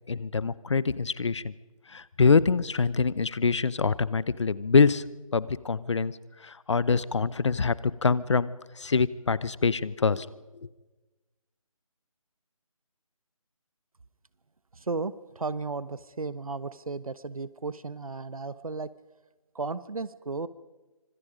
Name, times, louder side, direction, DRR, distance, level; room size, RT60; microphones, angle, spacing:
voice 1, 0.1-1.5 1.9-5.0 5.3-6.1 6.4-10.3, left 4 dB, 55° left, 19 dB, 0.9 m, -25 dB
voice 2, 14.7-18.9 19.5-20.5, right 4 dB, 75° right, 16 dB, 1.2 m, -34 dB
25.5 x 25.0 x 5.2 m, 1.2 s
figure-of-eight pair, 165°, 18 cm